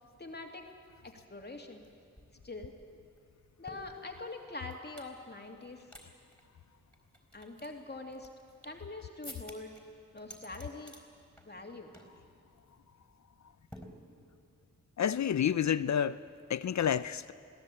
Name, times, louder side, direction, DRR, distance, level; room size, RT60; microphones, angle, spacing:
voice 1, 0.2-0.6 1.0-1.8 2.4-2.7 3.6-5.9 7.3-8.3 8.6-9.7 10.1-11.0 11.5-11.9, left 2 dB, 30° left, 2.6 m, -44 dB
sound 1, 1.8-1.9 2.2-5.1 5.6-6.0 6.3-6.4 6.9-8.8 9.2-9.8 10.2-11.0 11.4-11.7 11.9-12.2 12.5-12.7 13.7-14.5, equal, 5° left, 4.3 m, -52 dB
voice 2, 15.0-16.2 16.5-17.3, left 9 dB, 60° left, 0.5 m, -29 dB
21.5 x 16.5 x 8.5 m
cardioid pair, 50°, 32 cm